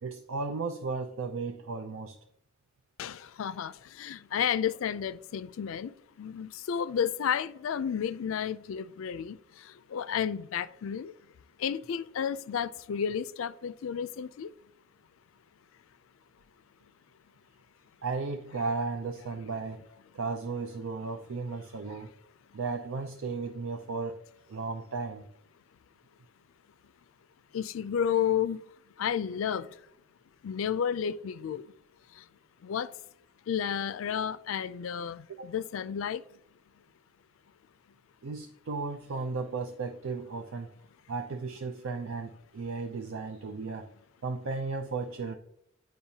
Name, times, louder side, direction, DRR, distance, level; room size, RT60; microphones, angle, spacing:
voice 1, 0.0-2.2 18.0-19.9 20.1-22.1 22.5-24.2 24.5-25.3 35.3-35.5 38.2-40.7 41.1-43.9 44.2-45.4, right 4 dB, 80° right, 0.5 m, -35 dB
voice 2, 3.0-3.7 4.0-5.9 6.2-9.4 9.9-11.1 11.6-14.5 27.5-28.6 29.0-29.7 30.4-31.6 32.6-32.9 33.5-36.2, left 8 dB, 80° left, 0.4 m, -31 dB
8.7 x 5.2 x 2.7 m
head